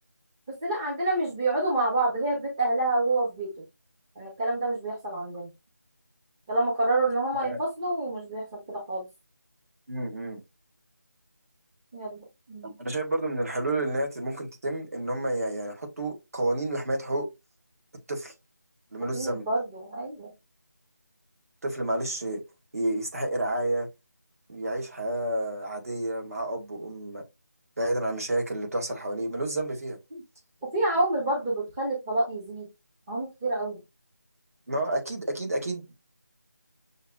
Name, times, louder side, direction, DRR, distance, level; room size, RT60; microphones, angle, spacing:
voice 1, 0.5-3.5 4.2-5.5 6.5-9.1 11.9-12.7 19.1-20.3 30.1-30.2 30.6-32.7 33.1-33.8, right 2 dB, 15° right, 0.8 m, -28 dB
voice 2, 9.9-10.4 12.6-17.3 18.1-18.3 18.9-19.5 21.6-22.4 22.7-23.9 24.5-27.2 27.8-30.0 34.7-35.9, right 1 dB, 55° right, 1.8 m, -30 dB
6.5 x 2.8 x 2.3 m
figure-of-eight pair, 170°, 10 cm